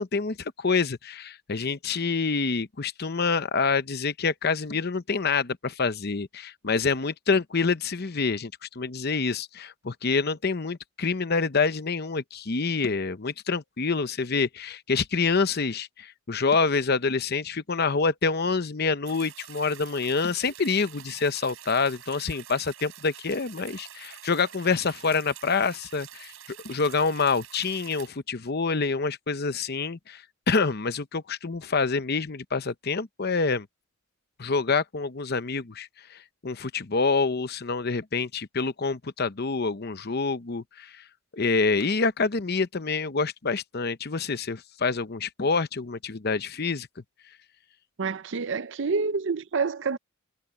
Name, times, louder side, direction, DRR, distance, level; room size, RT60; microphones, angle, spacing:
voice 1, 0.0-8.5 8.8-26.3 26.6-30.2 30.5-33.7 34.4-36.2 36.4-40.9 41.3-46.9, left 4 dB, 50° left, 0.8 m, -27 dB
sound 1, 19.1-28.1, right 11 dB, 85° right, 3.9 m, -47 dB
voice 2, 48.0-50.0, right 4 dB, 60° right, 0.6 m, -27 dB
head